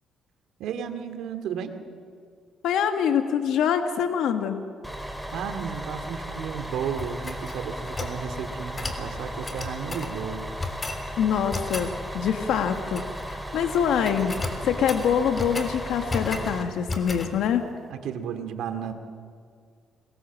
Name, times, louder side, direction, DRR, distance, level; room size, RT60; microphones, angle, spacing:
voice 1, 0.6-1.8 5.3-10.5 17.9-18.9, right 7 dB, 85° right, 7 dB, 2.4 m, -33 dB
voice 2, 2.6-4.7 11.2-17.7, left 8 dB, 80° left, 6 dB, 1.5 m, -25 dB
Bus, 4.8-16.6, equal, ahead, 3.4 m, -36 dB
sound 1, 7.0-8.2 8.8-9.0 9.4-10.1 10.6-11.0 11.5-11.9 12.7-13.3 13.6-13.8 14.0-15.7 16.1-16.5 16.9-17.3, left 3 dB, 30° left, 3.4 m, -34 dB
29.5 x 21.0 x 7.5 m, 2.1 s
cardioid pair, 90°, 0 cm